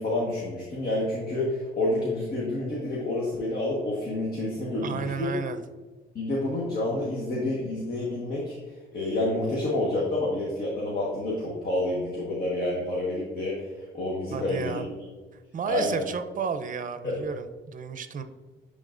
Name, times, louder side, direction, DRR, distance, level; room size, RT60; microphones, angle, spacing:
voice 1, 0.0-5.3 6.1-8.6 8.9-13.7 13.9-14.8 15.7-16.0 17.0-17.2, left 1 dB, 50° left, -4 dB, 1.4 m, -28 dB
voice 2, 4.8-5.6 14.3-14.9 15.5-18.2, right 6 dB, 45° right, 9 dB, 0.6 m, -32 dB
10.0 x 3.8 x 2.5 m, 1.3 s
cardioid pair, 90°, 20 cm